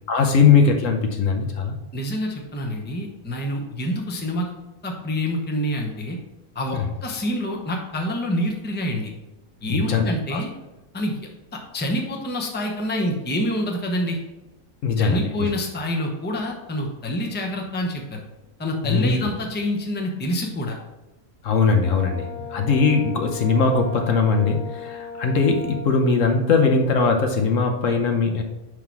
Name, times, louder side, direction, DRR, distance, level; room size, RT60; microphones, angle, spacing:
voice 1, 0.1-1.7 6.7-6.9 9.7-10.4 14.8-15.5 18.8-19.2 21.4-28.4, left 4 dB, 65° left, 3 dB, 1.1 m, -20 dB
voice 2, 1.9-4.5 4.8-6.2 6.5-9.1 9.6-10.5 10.9-11.2 11.7-14.2 15.0-18.2 18.6-20.8, equal, 10° left, 1 dB, 0.7 m, -27 dB
Brass instrument, 21.8-25.9, left 4 dB, 50° right, 1.3 m, -36 dB
5.6 x 4.9 x 4.6 m, 1.0 s
omnidirectional pair, 1.5 m